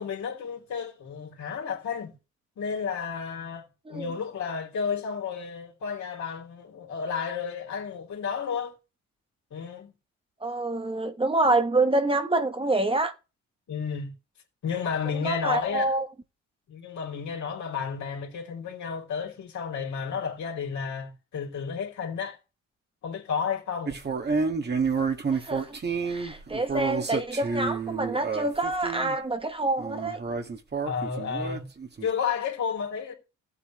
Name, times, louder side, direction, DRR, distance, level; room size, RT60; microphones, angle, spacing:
voice 1, 0.0-2.1 2.6-8.7 9.5-9.9 13.7-14.1 14.6-15.9 16.7-22.4 23.0-24.0 30.8-31.7 32.0-33.1, left 6 dB, 70° left, 3.2 m, -32 dB
voice 2, 10.4-13.1 15.2-16.1 25.3-25.8 26.0-30.2, right 2 dB, 20° right, 1.2 m, -27 dB
sound 1, 23.9-29.1 29.8-32.1, right 5 dB, 35° right, 1.8 m, -29 dB
14.5 x 8.4 x 3.1 m
cardioid pair, 90°, 30 cm